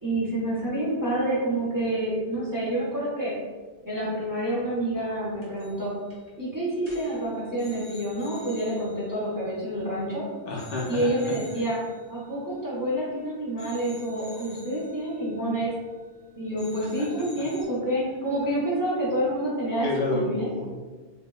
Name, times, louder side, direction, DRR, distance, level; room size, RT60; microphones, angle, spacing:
voice 1, 0.0-3.3 3.8-5.9 6.4-10.2 10.9-11.8 12.1-15.7 16.4-20.5, right 1 dB, 25° right, -8 dB, 0.6 m, -28 dB
sound 1, 5.4-5.8 6.1-6.3 6.8-10.1 10.6-13.2 13.6-16.3 16.6-17.6, equal, 15° left, 0.8 m, -50 dB
voice 2, 10.5-11.3 19.8-20.8, left 2 dB, 65° left, -3 dB, 0.7 m, -30 dB
3.6 x 2.1 x 2.2 m, 1.4 s
omnidirectional pair, 1.1 m